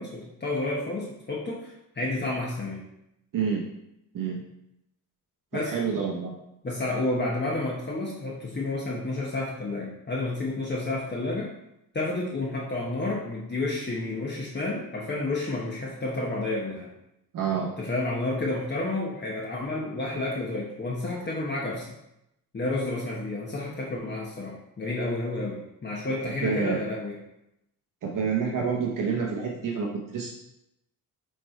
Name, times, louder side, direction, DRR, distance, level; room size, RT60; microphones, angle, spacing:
voice 1, 0.0-2.8 5.5-5.8 6.6-11.5 11.9-16.9 17.8-21.9 22.5-27.2, left 2 dB, 30° left, -4 dB, 1.1 m, -30 dB
voice 2, 3.3-3.7 4.1-4.4 5.5-6.3 17.3-17.7 26.4-26.8 28.0-30.3, right 6 dB, 60° right, -1 dB, 0.9 m, -28 dB
6.6 x 3.3 x 4.4 m, 0.84 s
cardioid pair, 105°, 36 cm